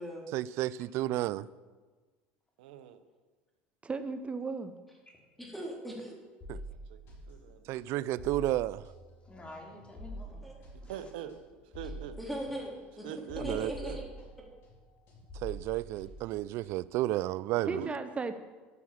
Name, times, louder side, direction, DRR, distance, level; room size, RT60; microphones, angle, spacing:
voice 1, 0.3-1.5 6.5-6.6 7.7-8.8 13.4-13.7 15.3-17.8, right 15 dB, 60° right, 20 dB, 0.4 m, -32 dB
voice 2, 2.6-3.0 6.7-7.8 10.8-11.4 11.7-12.2 13.0-14.0 17.6-17.9, right 9 dB, 85° right, 11 dB, 0.9 m, -43 dB
voice 3, 3.8-4.7 17.7-18.3, right 4 dB, 25° right, 10 dB, 0.7 m, -35 dB
voice 4, 5.4-6.1 10.4-10.5 12.2-12.7 13.0-13.1 13.4-14.0, equal, ahead, -3 dB, 3.8 m, -38 dB
sound 1, 6.4-14.8 15.1-17.0, equal, 55° left, 4.2 m, -46 dB
voice 5, 9.2-11.1, left 1 dB, 20° left, 0 dB, 3.3 m, -50 dB
13.5 x 6.2 x 7.3 m, 1.4 s
supercardioid pair, 95°, 5 cm